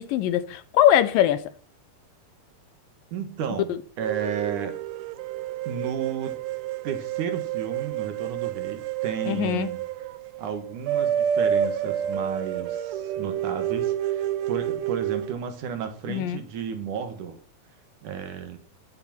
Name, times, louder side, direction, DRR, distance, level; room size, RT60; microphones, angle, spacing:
voice 1, 0.0-1.4 9.3-9.7 16.1-16.4, left 11 dB, 75° left, 2.3 m, -21 dB
voice 2, 3.1-4.8 5.7-6.4 6.8-9.8 10.4-17.4 18.0-18.6, right 7 dB, 65° right, 2.6 m, -33 dB
sound 1, 4.0-15.3, right 10 dB, 85° right, 2.7 m, -29 dB
10.0 x 9.6 x 5.8 m
omnidirectional pair, 4.3 m